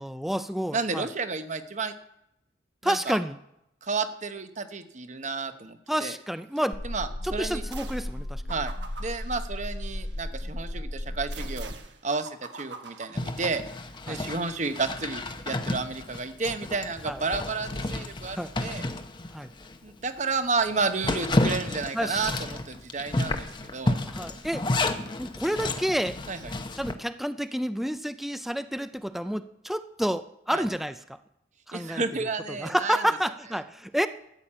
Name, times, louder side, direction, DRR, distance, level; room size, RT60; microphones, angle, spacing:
voice 1, 0.0-1.1 2.8-3.4 5.9-6.8 7.2-8.4 14.1-14.2 17.1-17.2 18.4-18.5 19.3-19.5 21.9-22.4 24.1-24.7 25.2-26.2 26.8-31.2 31.7-32.0 32.5-34.1, equal, ahead, 12 dB, 0.4 m, -29 dB
voice 2, 0.7-1.9 2.8-3.2 3.8-6.1 6.8-7.6 8.5-8.7 9.0-11.7 12.0-13.6 14.1-18.9 19.8-23.5 23.7-24.0 26.3-26.5 30.5-30.6 31.7-33.0, right 4 dB, 40° right, 9 dB, 0.9 m, -31 dB
sound 1, 6.7-11.7, left 1 dB, 50° left, 1.1 m, -35 dB
sound 2, 7.7-8.2 8.5-10.2 11.3-13.9, right 4 dB, 65° right, 1.3 m, -45 dB
Zipper (clothing), 13.1-19.8 20.2-20.3 20.7-26.9, left 2 dB, 25° left, 0.8 m, -31 dB
13.0 x 7.2 x 8.7 m, 0.82 s
head